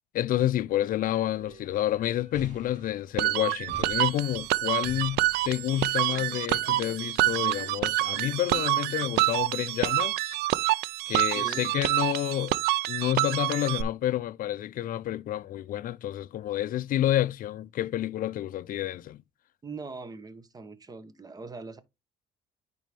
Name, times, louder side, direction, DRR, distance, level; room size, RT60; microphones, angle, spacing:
voice 1, 0.1-10.4 11.1-12.6 12.9-19.2, left 13 dB, 55° left, 0.4 m, -29 dB
sound 1, 1.0-9.5 10.4-10.5 10.8-10.9 11.2-11.3 11.8-11.9 13.4-13.5, equal, 45° right, 2.7 m, -49 dB
sound 2, 3.2-13.8, right 17 dB, 75° right, 0.4 m, -27 dB
voice 2, 11.3-11.7 19.6-21.8, right 4 dB, 20° right, 0.9 m, -41 dB
9.5 x 4.1 x 3.3 m
cardioid pair, 110°, 17 cm